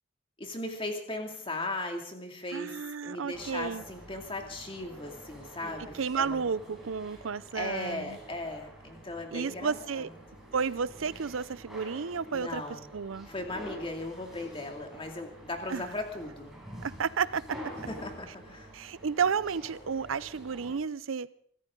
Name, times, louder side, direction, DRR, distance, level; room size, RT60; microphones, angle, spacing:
voice 1, 0.4-6.4 7.5-10.1 12.3-12.9 13.3-16.5 17.9-18.7, left 2 dB, 25° left, 2.5 m, -38 dB
voice 2, 2.5-3.8 6.0-8.2 9.3-10.1 10.5-12.6 12.9-13.3 15.7-15.9 16.8-17.4 18.7-21.3, right 6 dB, 80° right, 0.6 m, -32 dB
sound 1, 3.3-20.8, right 1 dB, ahead, 5.2 m, -47 dB
25.0 x 13.5 x 3.8 m
head